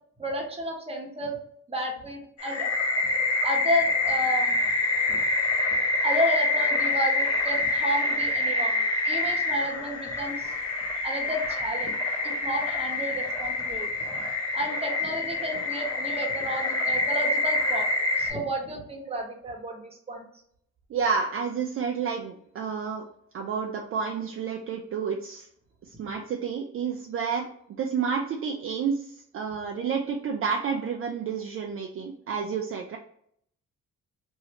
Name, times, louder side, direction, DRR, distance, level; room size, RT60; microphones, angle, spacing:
voice 1, 0.2-1.4 1.7-2.7 3.4-4.6 5.1-5.2 6.0-10.5 11.0-11.9 12.2-14.2 14.5-20.2, equal, 20° right, 0 dB, 1.0 m, -31 dB
sound 1, 2.4-18.3, left 2 dB, 50° left, 1.4 m, -26 dB
voice 2, 20.9-23.0 23.3-25.5 25.8-27.5 27.8-33.0, right 6 dB, 45° right, 2 dB, 0.5 m, -30 dB
3.2 x 2.7 x 2.8 m, 0.68 s
cardioid pair, 90°, 30 cm